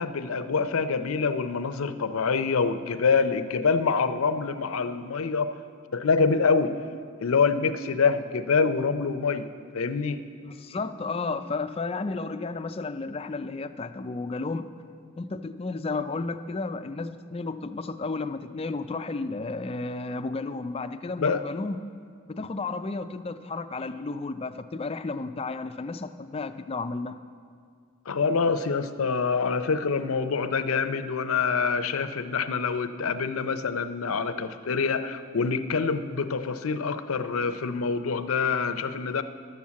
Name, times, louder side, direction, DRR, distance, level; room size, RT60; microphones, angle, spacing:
voice 1, 0.0-5.5 5.9-6.7 7.2-10.2 21.2-21.4 28.1-39.2, left 5 dB, 75° left, 10 dB, 0.6 m, -26 dB
voice 2, 10.4-14.7 15.1-21.8 22.3-27.2, left 3 dB, 25° left, 9 dB, 0.4 m, -32 dB
11.5 x 7.1 x 7.4 m, 2.2 s
head